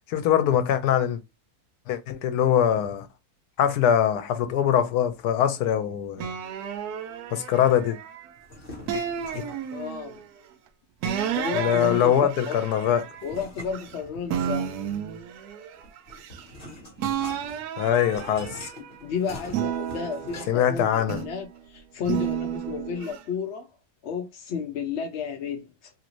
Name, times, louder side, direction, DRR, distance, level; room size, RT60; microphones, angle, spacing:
voice 1, 0.1-1.2 1.9-3.1 3.6-6.3 7.3-8.0 8.9-9.0 9.3-9.5 11.5-13.1 17.8-18.7 20.5-21.2, left 9 dB, 85° left, 1.2 m, -23 dB
sound 1, 6.2-8.3 8.9-10.2 11.0-14.0 14.3-16.7 17.0-19.0 19.5-21.5 22.1-23.2, right 9 dB, 75° right, 1.1 m, -32 dB
sound 2, 8.4-9.7 11.2-12.2 13.2-14.6 15.7-20.8, left 1 dB, 40° left, 1.3 m, -44 dB
voice 2, 9.7-10.2 11.3-12.6 13.2-14.7 18.8-23.7 24.0-25.9, left 6 dB, 70° left, 0.7 m, -32 dB
3.2 x 2.5 x 2.9 m
omnidirectional pair, 1.7 m